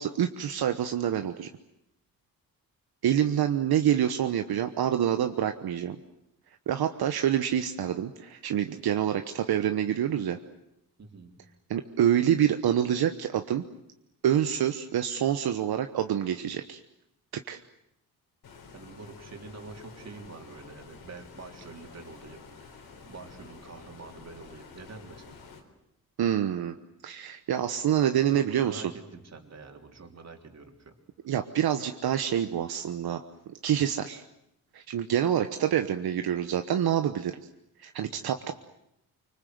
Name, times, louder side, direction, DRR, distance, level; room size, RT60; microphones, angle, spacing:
voice 1, 0.0-1.5 3.0-6.0 6.7-10.4 11.7-13.6 14.2-16.8 17.5-17.6 26.2-26.7 27.0-28.9 31.2-33.2 33.6-34.2 34.7-37.4 37.8-38.5, right 10 dB, 80° right, 7 dB, 1.2 m, -27 dB
voice 2, 11.0-11.4 18.7-25.4 28.3-30.9 38.2-38.3, right 4 dB, 45° right, 3 dB, 3.6 m, -46 dB
Stream, 18.4-25.6, left 5 dB, 80° left, 4.2 m, -50 dB
25.0 x 25.0 x 7.9 m, 0.82 s
cardioid pair, 115°, 37 cm